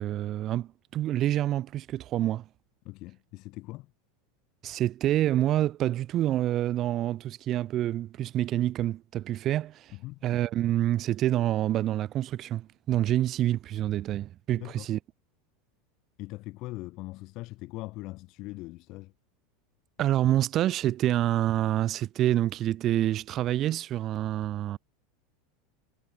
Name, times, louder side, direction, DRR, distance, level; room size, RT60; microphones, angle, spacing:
voice 1, 0.0-2.5 4.6-10.0 10.2-15.0 20.0-24.8, right 13 dB, 30° right, 0.7 m, -27 dB
voice 2, 2.8-3.9 10.0-10.2 14.5-14.9 16.2-19.1, left 20 dB, 40° left, 2.1 m, -41 dB
supercardioid pair, 160°, 0 cm